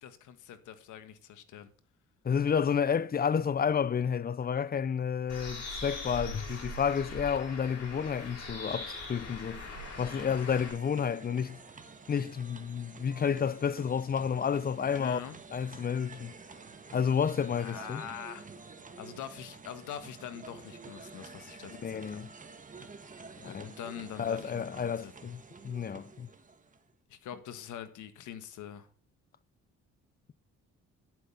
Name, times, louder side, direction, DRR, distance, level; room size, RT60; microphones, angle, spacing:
voice 1, 0.0-1.7 15.0-15.4 17.5-18.5 19.0-22.2 23.4-25.1 27.1-28.9, left 9 dB, 80° left, 1.5 m, -44 dB
voice 2, 2.2-11.6 12.1-15.2 15.5-16.3 16.9-18.0 21.7-22.3 23.4-23.8 24.2-26.3, left 7 dB, 30° left, 0.6 m, -31 dB
Bird, 5.3-10.7, left 2 dB, 55° left, 6.3 m, -41 dB
sound 1, 8.9-26.9, right 4 dB, 25° right, 1.7 m, -50 dB
11.5 x 7.9 x 5.5 m
cardioid pair, 90°, 30 cm